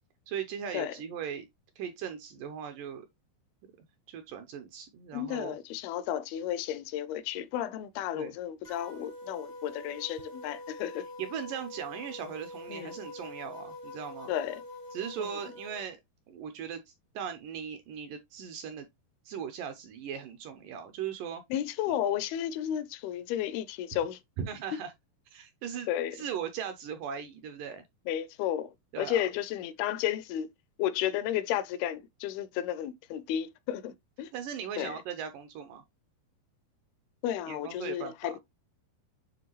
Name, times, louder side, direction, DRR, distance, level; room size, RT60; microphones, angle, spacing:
voice 1, 0.3-1.5 1.8-3.1 4.1-5.6 8.1-8.3 11.2-14.3 14.9-16.0 16.3-18.9 19.3-21.4 21.9-22.0 24.4-24.9 25.3-27.8 28.9-29.3 34.3-35.8 37.5-38.4, right 8 dB, 80° right, 2.1 m, -38 dB
voice 2, 5.1-11.1 12.7-12.9 14.3-14.6 15.2-15.3 21.5-24.2 25.9-26.2 28.1-30.5 30.8-34.3 34.8-35.0 37.2-38.4, left 11 dB, 80° left, 2.5 m, -33 dB
sound 1, 8.6-15.8, left 1 dB, 55° left, 0.6 m, -45 dB
9.3 x 3.3 x 3.0 m
omnidirectional pair, 4.5 m